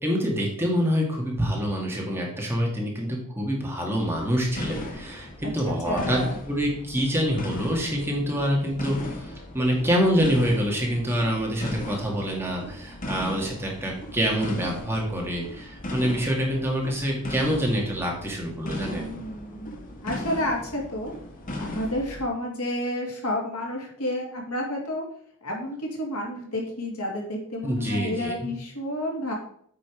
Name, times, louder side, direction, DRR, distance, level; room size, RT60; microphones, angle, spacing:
voice 1, 0.0-6.2 6.5-19.1 27.6-28.5, equal, 10° right, -2 dB, 1.8 m, -26 dB
sound 1, 4.0-22.2, left 1 dB, 40° left, 1.5 m, -37 dB
voice 2, 5.7-6.3 18.8-21.1 21.6-25.0 25.4-29.4, left 1 dB, 80° left, -1 dB, 2.5 m, -30 dB
8.6 x 5.1 x 4.8 m, 0.64 s
head